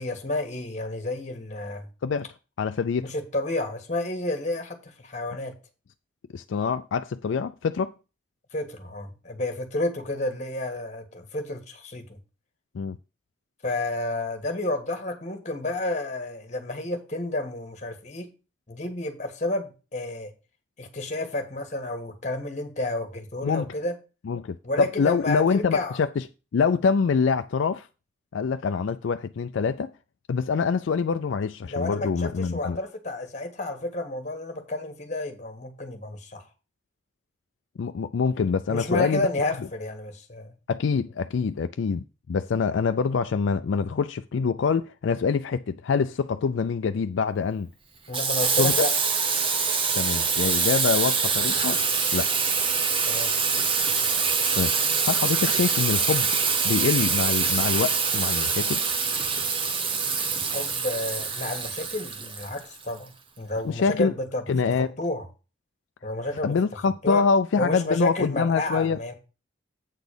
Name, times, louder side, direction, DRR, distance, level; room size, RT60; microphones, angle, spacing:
voice 1, 0.0-1.9 3.0-5.5 8.5-12.2 13.6-18.3 18.7-20.3 20.8-23.9 24.6-26.0 31.7-36.4 38.7-40.6 48.1-48.9 53.1-53.3 60.3-65.2 66.0-66.5 67.0-67.2 67.6-69.1, left 2 dB, 35° left, 1.5 m, -31 dB
voice 2, 2.6-3.1 6.3-7.9 12.7-13.0 23.4-23.7 24.2-26.2 26.5-27.9 28.3-29.9 30.3-32.8 37.8-39.2 40.7-47.7 48.6-48.7 50.0-51.8 52.1-52.3 54.6-54.8 55.0-56.3 56.6-58.8 63.6-64.1 64.5-64.9 66.4-69.0, left 5 dB, 75° left, 0.4 m, -25 dB
Water tap faucet / Sink (filling or washing), 48.1-62.9, right 5 dB, 30° right, 0.8 m, -25 dB
8.3 x 4.1 x 6.7 m
head